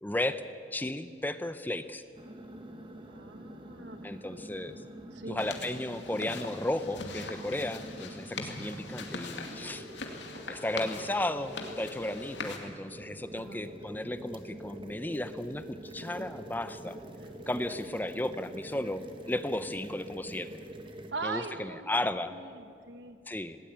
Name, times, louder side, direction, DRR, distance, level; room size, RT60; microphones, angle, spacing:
voice 1, 0.0-0.4 0.7-2.0 4.0-4.8 5.3-9.9 10.5-17.0 17.5-20.6 21.2-22.3 23.3-23.6, left 1 dB, 10° left, 11 dB, 0.6 m, -34 dB
sound 1, 2.1-21.1, right 1 dB, 30° right, 1.6 m, -46 dB
voice 2, 3.0-4.1 5.1-5.5 13.3-13.6 21.1-23.2, right 3 dB, 80° right, 9 dB, 1.4 m, -41 dB
sound 2, 5.4-12.6, left 3 dB, 75° left, 2.4 m, -42 dB
19.0 x 18.0 x 8.8 m, 2.4 s
head